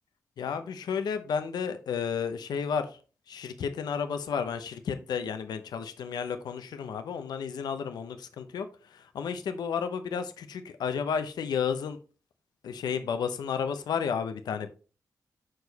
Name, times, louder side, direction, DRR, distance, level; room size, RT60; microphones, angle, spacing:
voice 1, 0.4-2.9 3.3-12.0 12.6-14.7, left 6 dB, 90° left, 0.7 m, -32 dB
6.3 x 4.8 x 4.1 m
cardioid pair, 55°, 7 cm